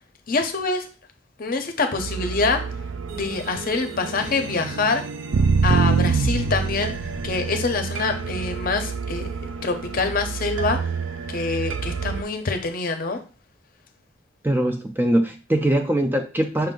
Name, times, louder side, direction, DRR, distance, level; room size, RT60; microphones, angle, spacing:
voice 1, 0.3-0.9 1.4-2.6 3.1-5.0 5.6-6.9 7.2-10.8 11.3-13.2, left 3 dB, 45° left, 6 dB, 0.6 m, -25 dB
sound 1, 2.0-12.2, right 5 dB, 75° right, 0.5 m, -26 dB
voice 2, 14.4-16.7, right 1 dB, 10° right, 5 dB, 0.3 m, -22 dB
5.7 x 2.5 x 3.7 m, 0.36 s
head